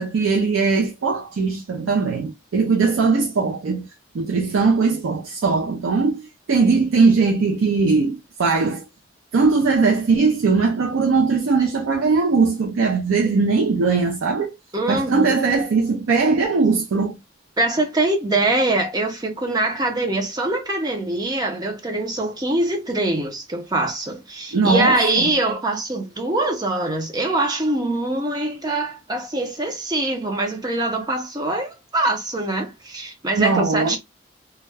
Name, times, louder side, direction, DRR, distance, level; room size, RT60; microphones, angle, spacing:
voice 1, 0.0-3.9 4.1-8.8 9.3-14.6 14.9-17.2 24.5-25.3 33.4-34.0, right 4 dB, 90° right, 0.4 m, -20 dB
voice 2, 14.7-15.4 17.6-34.0, right 2 dB, 20° right, 0.5 m, -23 dB
2.3 x 2.1 x 3.2 m
head